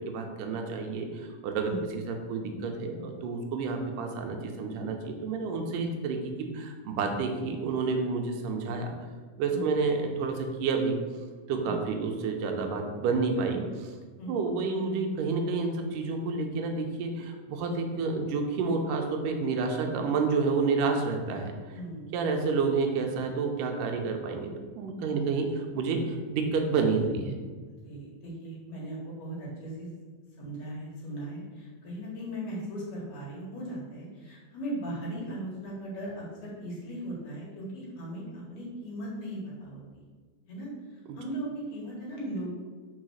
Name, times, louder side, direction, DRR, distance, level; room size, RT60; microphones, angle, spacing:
voice 1, 0.0-8.9 9.4-11.0 11.5-13.9 14.3-21.6 22.1-27.4 41.1-41.2, right 4 dB, 85° right, 3 dB, 2.4 m, -29 dB
voice 2, 21.7-22.1 25.0-25.3 27.8-29.9 30.4-40.0 40.5-42.5, right 1 dB, 60° left, -5 dB, 2.9 m, -38 dB
5.4 x 4.7 x 6.3 m, 1.5 s
omnidirectional pair, 3.7 m